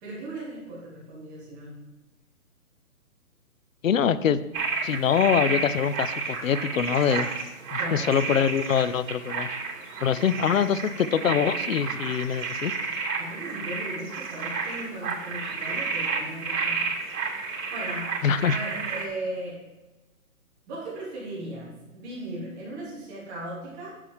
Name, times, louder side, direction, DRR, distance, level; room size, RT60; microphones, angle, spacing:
voice 1, 0.0-1.9 7.8-8.2 13.2-19.7 20.7-24.0, right 1 dB, 5° right, -5 dB, 0.9 m, -37 dB
voice 2, 3.8-4.4 4.8-7.3 7.7-9.5 10.0-12.7 18.2-18.6, left 8 dB, 60° left, 15 dB, 0.6 m, -24 dB
sound 1, 4.5-19.1, right 4 dB, 60° right, 2.6 m, -31 dB
7.2 x 6.8 x 4.8 m, 1.1 s
hypercardioid pair, 165°, 45 cm